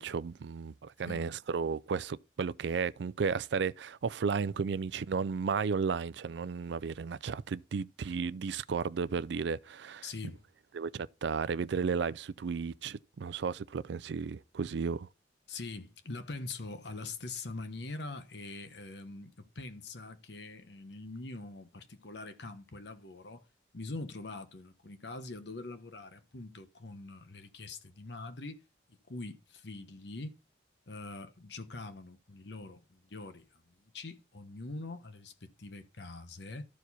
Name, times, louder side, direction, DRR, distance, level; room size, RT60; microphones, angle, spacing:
voice 1, 0.0-10.0 10.7-15.1, right 5 dB, 70° right, 0.4 m, -34 dB
voice 2, 10.0-10.4 15.5-23.5 23.7-28.6 28.9-30.4 30.9-36.7, left 3 dB, 65° left, 1.0 m, -43 dB
13.0 x 4.7 x 4.1 m
head